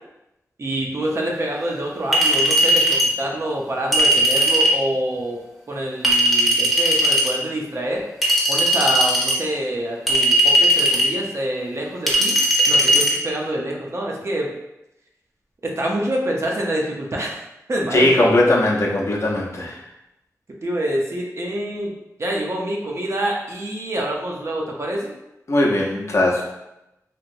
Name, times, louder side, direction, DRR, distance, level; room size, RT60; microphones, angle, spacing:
voice 1, 0.6-5.4 5.7-8.0 8.5-12.4 12.7-14.5 15.6-17.4 17.7-18.3 20.6-21.9 22.2-25.2, right 1 dB, 50° right, -1 dB, 0.6 m, -26 dB
Chink clink, 2.1-3.1 3.9-4.8 6.0-7.3 8.2-9.4 10.1-11.1 12.1-13.1, right 1 dB, ahead, 0.8 m, -17 dB
voice 2, 17.9-19.8 25.5-26.4, left 1 dB, 50° left, -3 dB, 0.6 m, -19 dB
2.9 x 2.8 x 2.6 m, 0.90 s
wide cardioid pair, 80°, 6 cm